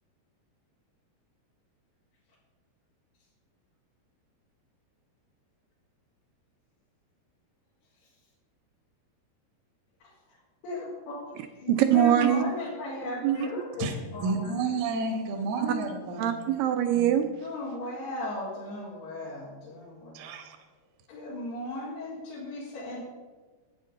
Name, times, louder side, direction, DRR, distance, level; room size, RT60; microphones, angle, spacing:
voice 1, 10.6-11.2 11.6-14.5 17.4-20.3 21.1-23.0, left 2 dB, 85° left, -8 dB, 4.0 m, -36 dB
voice 2, 11.7-12.4 13.2-13.5 16.2-17.5, right 10 dB, 80° right, 8 dB, 2.0 m, -23 dB
voice 3, 14.2-16.3 20.1-20.6, right 3 dB, 65° right, 4 dB, 1.7 m, -31 dB
11.0 x 8.9 x 3.9 m, 1.3 s
omnidirectional pair, 4.5 m